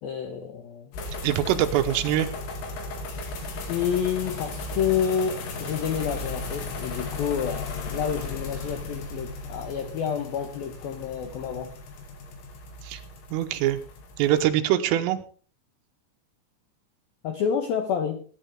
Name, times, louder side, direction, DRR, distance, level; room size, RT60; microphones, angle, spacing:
voice 1, 0.0-1.0 3.7-11.7 17.2-18.2, left 7 dB, 85° left, 2.0 m, -29 dB
sound 1, 0.9-14.5, left 3 dB, 70° left, 4.6 m, -36 dB
voice 2, 1.2-2.3 12.8-13.0 13.3-13.8 14.2-15.2, right 12 dB, 85° right, 3.4 m, -23 dB
20.5 x 10.0 x 3.5 m
omnidirectional pair, 6.0 m